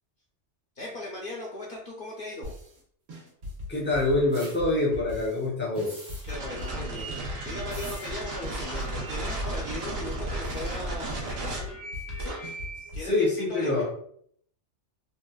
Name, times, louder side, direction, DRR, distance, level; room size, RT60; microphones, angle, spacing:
voice 1, 0.8-2.5 6.2-7.2 7.4-11.7 12.2-12.4 12.9-13.8, left 1 dB, 55° left, -3 dB, 0.7 m, -38 dB
sound 1, 2.4-2.8 3.1-5.5 5.8-8.1 8.4-10.8 11.1-13.1, left 2 dB, 85° right, 1.4 m, -39 dB
voice 2, 3.7-6.0 13.0-13.9, left 2 dB, 10° left, -4 dB, 0.7 m, -25 dB
sound 2, 4.3-4.6 5.7-6.4 7.7-8.1, right 1 dB, 35° right, 1.4 m, -44 dB
sound 3, 6.3-12.9, right 1 dB, 60° right, 1.0 m, -34 dB
3.8 x 2.5 x 2.3 m, 0.63 s
omnidirectional pair, 1.3 m